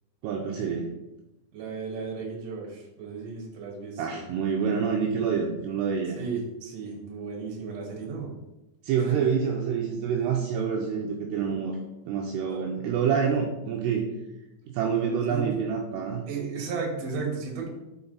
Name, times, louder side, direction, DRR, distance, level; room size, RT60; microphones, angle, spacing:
voice 1, 0.2-0.9 4.0-6.2 8.8-11.8 12.1-14.1 14.7-16.2, right 6 dB, 80° right, 1 dB, 2.5 m, -27 dB
voice 2, 1.5-4.2 6.2-8.3 9.1-9.2 12.5-12.6 15.3-15.5 16.3-17.7, right 5 dB, 50° right, -1 dB, 2.1 m, -34 dB
5.8 x 5.8 x 4.0 m, 0.96 s
omnidirectional pair, 5.2 m